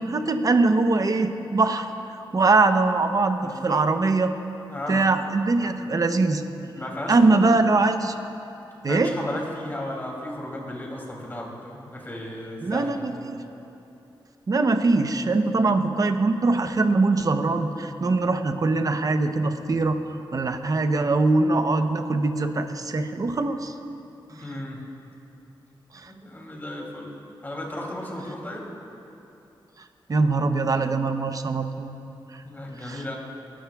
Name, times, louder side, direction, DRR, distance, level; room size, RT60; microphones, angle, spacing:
voice 1, 0.1-1.9 2.3-4.3 4.9-6.4 7.1-8.2 8.8-9.1 12.6-13.4 14.5-20.0 20.3-23.7 25.9-26.1 30.1-32.4 32.8-33.1, right 3 dB, 45° right, 7 dB, 0.8 m, -22 dB
voice 2, 3.4-3.9 4.7-5.1 6.7-7.5 8.9-13.3 24.3-24.8 26.0-27.1 27.4-28.7 32.4-33.1, left 1 dB, 25° left, -2 dB, 2.8 m, -34 dB
24.5 x 12.5 x 2.4 m, 2.9 s
wide cardioid pair, 90°, 9 cm